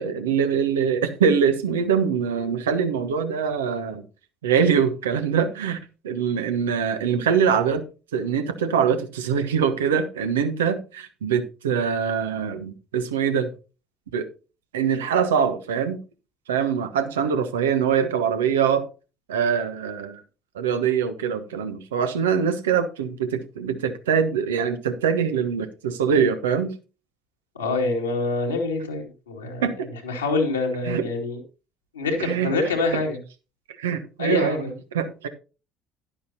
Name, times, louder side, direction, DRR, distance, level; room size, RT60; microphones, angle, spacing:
voice 1, 0.0-4.0 4.4-5.8 6.0-7.8 8.1-13.5 14.1-14.3 14.7-16.0 16.5-18.8 19.3-20.2 20.5-26.7 29.6-29.9 30.8-31.0 32.2-32.7 33.8-35.3, right 7 dB, 80° right, 1.1 m, -23 dB
voice 2, 27.5-29.6 30.0-31.4 31.9-33.2 34.2-34.7, left 3 dB, 85° left, 2.4 m, -25 dB
11.5 x 10.0 x 2.8 m
figure-of-eight pair, 55°, 0 cm